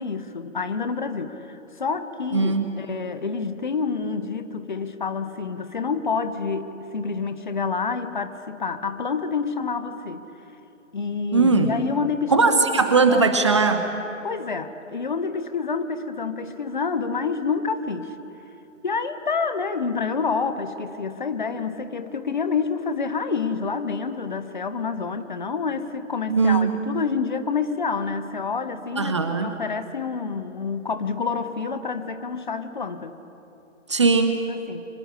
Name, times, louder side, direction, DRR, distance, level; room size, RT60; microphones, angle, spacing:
voice 1, 0.0-10.3 10.9-13.2 14.2-18.1 18.8-33.1 34.5-34.9, left 5 dB, 40° left, 10 dB, 1.2 m, -28 dB
voice 2, 2.3-2.7 11.3-11.7 12.3-13.8 26.3-26.7 29.0-29.5 33.9-34.3, right 4 dB, 25° right, 7 dB, 0.9 m, -19 dB
24.5 x 19.0 x 8.2 m, 2.9 s
figure-of-eight pair, 145°, 38 cm